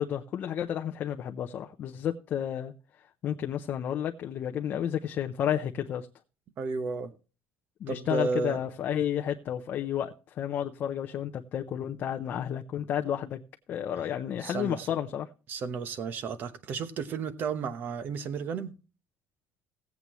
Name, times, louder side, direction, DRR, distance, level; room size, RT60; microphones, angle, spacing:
voice 1, 0.0-2.7 3.2-6.1 7.8-13.4 13.7-15.3, left 9 dB, 40° left, 0.6 m, -31 dB
voice 2, 6.6-7.1 7.9-8.6 14.4-15.0 15.5-18.7, right 5 dB, 40° right, 0.9 m, -33 dB
17.0 x 8.2 x 3.0 m
cardioid pair, 180°, 5 cm